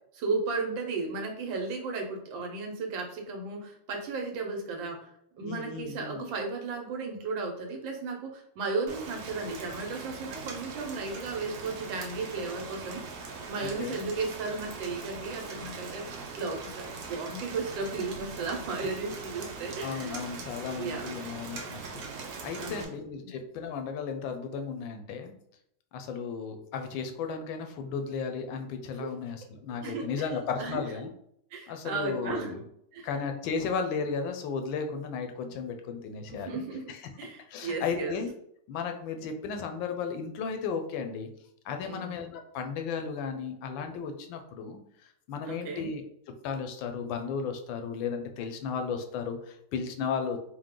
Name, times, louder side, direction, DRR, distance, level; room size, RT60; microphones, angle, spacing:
voice 1, 0.2-5.1 5.4-13.0 13.5-20.4 20.7-21.1 22.6-22.9 29.0-29.1 29.8-30.2 30.6-31.1 31.5-32.6 32.9-33.1 36.3-38.1 41.8-42.2 45.5-45.9, right 4 dB, 80° right, 2 dB, 1.6 m, -35 dB
voice 2, 5.4-6.3 13.6-14.0 19.8-22.0 22.4-25.3 25.9-31.1 31.7-32.6 33.0-37.1 37.5-38.3 38.7-41.3 41.6-44.8 45.3-46.0 46.4-50.4, left 5 dB, 85° left, 5 dB, 1.4 m, -34 dB
Rain, 8.9-22.8, right 4 dB, 60° right, 1.0 m, -41 dB
4.6 x 2.1 x 3.7 m, 0.72 s
omnidirectional pair, 2.1 m